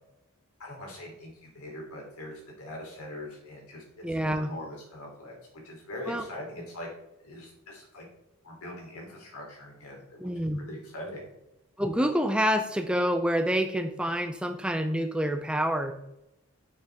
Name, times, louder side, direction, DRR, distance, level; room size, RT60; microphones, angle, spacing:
voice 1, 0.6-3.8 4.2-5.3 5.6-6.9 7.2-8.0 8.4-10.3 10.6-11.3, left 1 dB, 80° left, -1 dB, 3.4 m, -42 dB
voice 2, 4.0-4.5 6.1-6.2 10.2-10.6 11.8-15.9, equal, 5° right, 6 dB, 0.5 m, -27 dB
9.6 x 6.6 x 3.6 m, 0.90 s
head